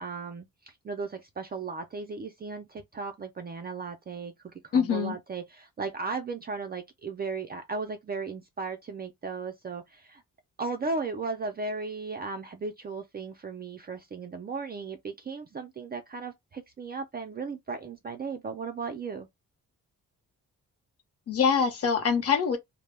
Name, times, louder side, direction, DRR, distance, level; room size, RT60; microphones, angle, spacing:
voice 1, 0.0-4.3 4.6-10.2 10.6-19.3, right 4 dB, 30° right, 0.3 m, -36 dB
voice 2, 4.7-5.2 21.3-22.6, left 6 dB, 45° left, 0.8 m, -24 dB
2.1 x 2.0 x 3.2 m
wide cardioid pair, 140°, 33 cm